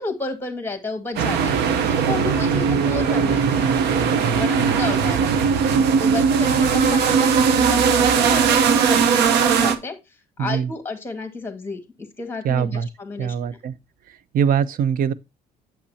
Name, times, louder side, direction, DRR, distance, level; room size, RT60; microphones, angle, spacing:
voice 1, 0.0-3.7 4.3-5.4 6.0-10.0 10.4-11.8 12.2-13.4, left 3 dB, 15° left, 2.0 m, -31 dB
sound 1, 1.2-9.8, right 6 dB, 80° right, 0.9 m, -19 dB
voice 2, 10.4-10.7 12.4-12.9 13.2-13.8 14.3-15.1, right 8 dB, 55° right, 0.6 m, -22 dB
8.4 x 7.3 x 2.8 m
cardioid pair, 110°, 17 cm